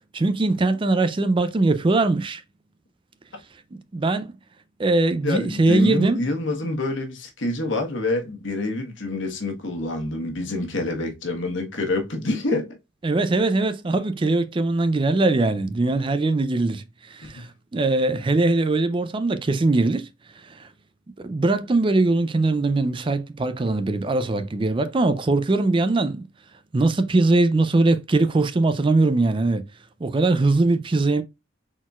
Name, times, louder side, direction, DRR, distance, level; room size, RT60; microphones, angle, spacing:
voice 1, 0.1-2.4 3.7-4.3 4.8-6.2 13.0-20.1 20.4-20.7 21.2-26.2 26.7-29.6 30.0-31.2, right 2 dB, 25° right, 0.4 m, -21 dB
voice 2, 5.2-12.7 17.2-17.5, left 2 dB, 75° left, 1.3 m, -27 dB
4.2 x 4.0 x 2.3 m
head